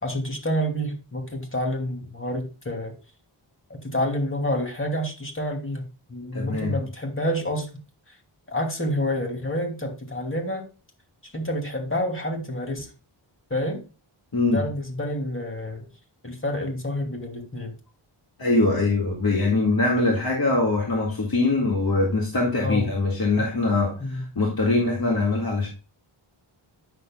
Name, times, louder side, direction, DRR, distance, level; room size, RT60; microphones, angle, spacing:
voice 1, 0.0-2.9 3.8-7.7 8.1-8.2 8.5-10.6 11.2-12.9 13.5-13.8 14.5-15.8 16.2-17.7 22.6-22.9 24.0-24.3, equal, 25° left, 2.6 m, -28 dB
voice 2, 6.3-6.8 14.3-14.6 18.4-25.7, left 3 dB, 45° left, 2.1 m, -23 dB
9.6 x 6.9 x 2.3 m
wide cardioid pair, 65°, 50 cm